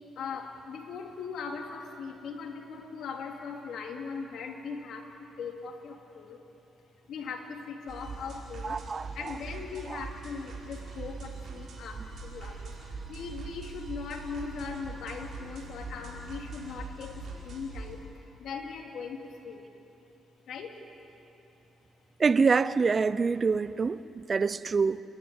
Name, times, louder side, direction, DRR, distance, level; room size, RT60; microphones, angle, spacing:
voice 1, 0.2-5.0 5.4-6.4 7.1-8.8 9.2-12.6 13.1-17.1 17.4-18.0 18.4-19.6 20.5-20.7, left 5 dB, 70° left, 2.6 m, -39 dB
sound 1, 7.9-18.0, right 4 dB, 60° right, 5.2 m, -42 dB
voice 2, 8.6-9.1 9.9-10.0 22.2-25.0, right 5 dB, 35° right, 0.6 m, -26 dB
28.5 x 11.5 x 9.8 m
cardioid pair, 90°, 0 cm